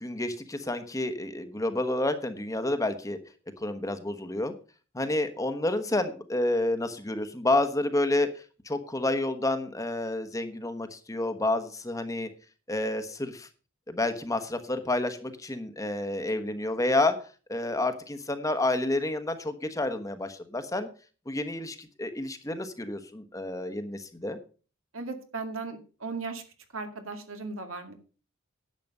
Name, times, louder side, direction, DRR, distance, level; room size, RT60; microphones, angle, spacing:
voice 1, 0.0-3.2 3.6-4.5 4.9-12.3 12.7-13.5 13.9-17.1 17.5-20.9 21.3-24.4, left 2 dB, 15° left, 9 dB, 1.1 m, -29 dB
voice 2, 24.9-26.4 26.7-27.9, right 3 dB, 85° right, 6 dB, 2.2 m, -37 dB
11.0 x 7.5 x 5.4 m, 0.37 s
head